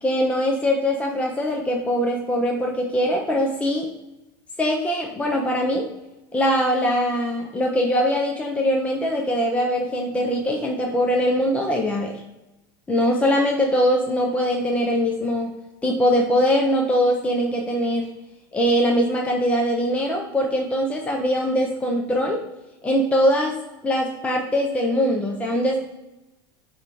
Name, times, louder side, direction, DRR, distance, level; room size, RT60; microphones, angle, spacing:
voice 1, 0.0-3.9 4.6-5.9 6.3-12.2 12.9-15.5 15.8-18.1 18.5-22.4 22.8-23.6 23.8-25.8, equal, 10° left, 0 dB, 0.9 m, -22 dB
6.5 x 3.5 x 4.9 m, 0.98 s
supercardioid pair, 140°, 12 cm